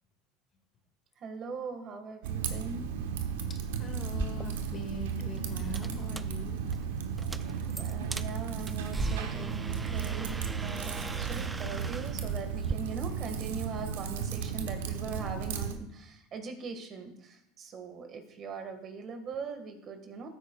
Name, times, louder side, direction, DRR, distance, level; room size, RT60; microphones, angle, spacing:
voice 1, 1.2-2.9 7.7-20.3, right 4 dB, 40° right, 6 dB, 1.7 m, -41 dB
Typing, 2.2-15.7, right 7 dB, 85° right, 0.9 m, -34 dB
voice 2, 3.8-6.6, left 3 dB, 35° left, 4 dB, 2.1 m, -42 dB
sound 1, 4.3-12.8, right 3 dB, 15° right, 0.4 m, -40 dB
14.5 x 8.9 x 2.4 m, 0.77 s
supercardioid pair, 100°, 0 cm